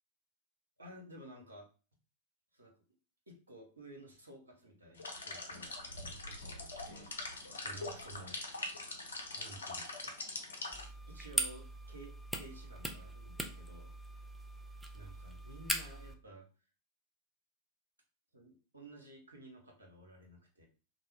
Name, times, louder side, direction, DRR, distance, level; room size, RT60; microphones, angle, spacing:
voice 1, 0.8-1.6 2.5-2.7 3.3-5.7 6.0-8.4 9.3-10.3 11.1-13.9 14.9-16.4 18.3-20.7, right 1 dB, 80° right, 0 dB, 0.8 m, -54 dB
sound 1, 5.0-10.9, left 2 dB, 70° left, 0.6 m, -43 dB
sound 2, 10.7-16.1, right 1 dB, 5° right, 0.4 m, -41 dB
2.4 x 2.0 x 3.3 m, 0.38 s
figure-of-eight pair, 90°, 0 cm